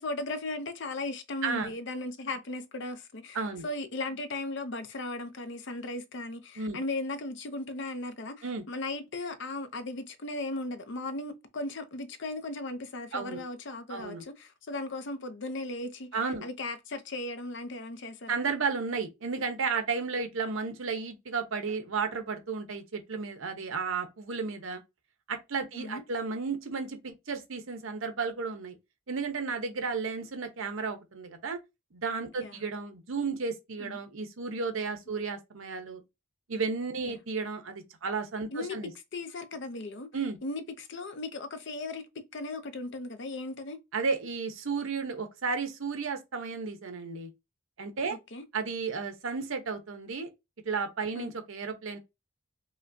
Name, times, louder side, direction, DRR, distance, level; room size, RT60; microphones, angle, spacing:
voice 1, 0.0-16.1 16.4-18.4 25.7-26.0 32.4-32.7 33.8-34.0 37.0-37.2 38.5-38.8 39.1-40.1 40.4-43.8 48.1-48.4 51.1-51.3, left 2 dB, 60° left, 0.6 m, -37 dB
voice 2, 13.1-13.4 13.9-14.2 16.1-16.4 18.3-24.8 25.3-28.8 29.1-31.6 31.9-36.0 36.5-38.9 40.1-40.4 43.9-47.3 47.8-48.2 48.5-50.3 50.6-52.0, right 4 dB, 75° right, 0.8 m, -33 dB
5.0 x 2.1 x 2.6 m
head